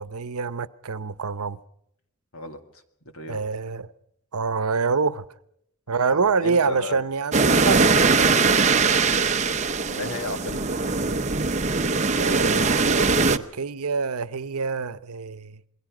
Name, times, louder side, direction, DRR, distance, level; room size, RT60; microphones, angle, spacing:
voice 1, 0.0-1.6 3.3-3.9 4.3-5.2 5.9-8.8 12.2-15.6, right 4 dB, 85° right, 0.8 m, -27 dB
voice 2, 6.1-7.0 9.5-11.0, left 2 dB, 70° left, 2.0 m, -35 dB
sound 1, 7.3-13.4, right 4 dB, 30° right, 0.7 m, -21 dB
28.0 x 21.0 x 4.9 m
head